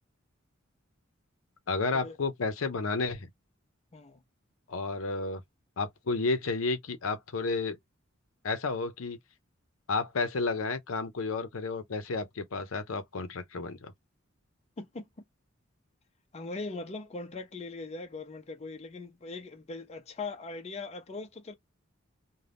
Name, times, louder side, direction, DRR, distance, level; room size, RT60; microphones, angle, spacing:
voice 1, 1.7-3.3 4.7-5.4 5.8-7.8 8.4-9.2 9.9-13.9, left 3 dB, 75° left, 0.6 m, -31 dB
voice 2, 16.3-21.5, left 3 dB, 30° left, 0.5 m, -40 dB
2.5 x 2.2 x 3.3 m
head